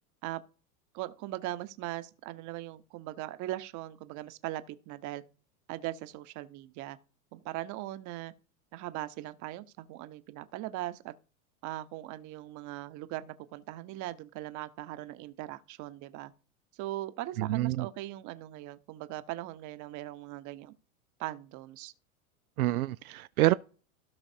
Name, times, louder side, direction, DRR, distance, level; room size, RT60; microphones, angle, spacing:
voice 1, 0.9-5.2 5.7-7.0 7.3-8.3 8.7-11.1 11.6-16.3 16.7-20.7 21.2-21.9, right 15 dB, 45° right, 1.0 m, -40 dB
voice 2, 17.4-17.9 22.6-23.5, right 16 dB, 80° right, 0.5 m, -27 dB
16.0 x 5.7 x 2.8 m
hypercardioid pair, 105°, 43 cm